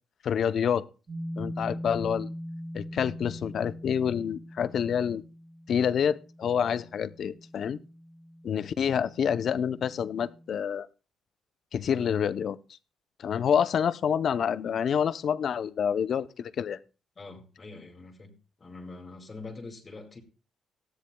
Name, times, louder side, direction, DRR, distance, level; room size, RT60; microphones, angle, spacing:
voice 1, 0.2-0.8 1.4-2.3 2.7-5.2 5.7-7.8 8.4-10.9 11.7-12.6 13.2-16.8, left 8 dB, 60° left, 0.6 m, -27 dB
sound 1, 1.1-10.5, equal, 40° right, 4.1 m, -42 dB
voice 2, 17.2-18.3 18.6-20.2, left 3 dB, 35° left, 2.2 m, -44 dB
18.0 x 13.0 x 2.2 m
cardioid pair, 90°, 0 cm